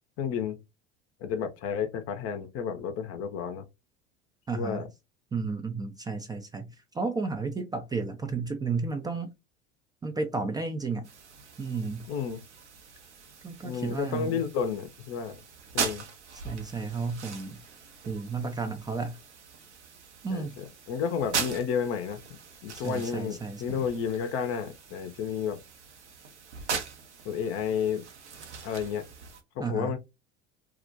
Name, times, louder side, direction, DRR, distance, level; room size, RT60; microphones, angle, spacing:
voice 1, 0.2-0.6 1.2-3.6 4.5-4.9 12.1-12.4 13.6-15.4 15.7-16.1 20.3-20.5 20.9-25.6 27.2-28.1 28.6-29.1 29.6-30.0, left 7 dB, 45° left, 0.6 m, -31 dB
voice 2, 4.5-4.9 5.3-9.3 10.0-11.1 11.6-12.1 13.4-14.4 16.3-17.6 18.0-19.2 20.2-20.6 22.7-23.8 29.6-30.0, right 4 dB, 10° right, 0.3 m, -33 dB
sound 1, 11.0-29.4, right 6 dB, 85° right, 0.6 m, -40 dB
2.3 x 2.1 x 2.6 m
figure-of-eight pair, 75°, 34 cm